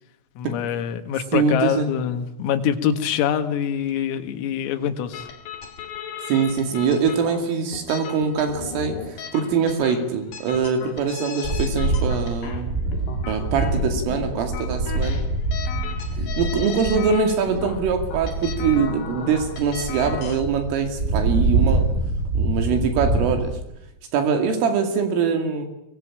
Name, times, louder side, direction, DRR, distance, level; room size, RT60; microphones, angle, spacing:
voice 1, 0.4-5.3, left 9 dB, 80° left, 7 dB, 4.3 m, -25 dB
voice 2, 1.3-1.9 6.3-12.8 13.3-15.2 16.4-21.9 22.3-23.6 24.1-25.7, right 6 dB, 75° right, 5 dB, 4.9 m, -23 dB
sound 1, 5.1-20.4, left 7 dB, 60° left, 4.2 m, -36 dB
sound 2, 11.4-23.5, right 2 dB, 15° right, 6.6 m, -25 dB
23.5 x 22.5 x 8.8 m, 0.87 s
omnidirectional pair, 5.9 m